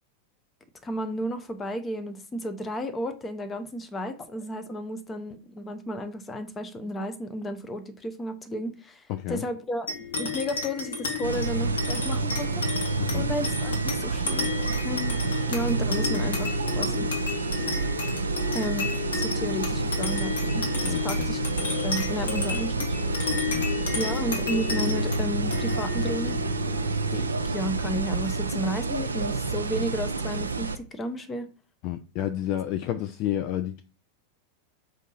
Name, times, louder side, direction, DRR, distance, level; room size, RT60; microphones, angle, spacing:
voice 1, 0.8-12.7 13.1-14.5 14.8-15.2 15.5-17.2 18.5-21.4 21.8-23.0 23.9-26.4 27.1-31.5, equal, 15° left, 0.7 m, -33 dB
voice 2, 9.1-9.4 13.0-13.3 20.8-21.3 23.3-24.0 31.8-33.8, left 12 dB, 40° left, 0.3 m, -31 dB
sound 1, 9.9-28.7, left 5 dB, 65° left, 1.0 m, -32 dB
sound 2, 11.2-30.8, right 3 dB, 75° right, 0.4 m, -29 dB
4.9 x 2.7 x 4.0 m
figure-of-eight pair, 90°, 0 cm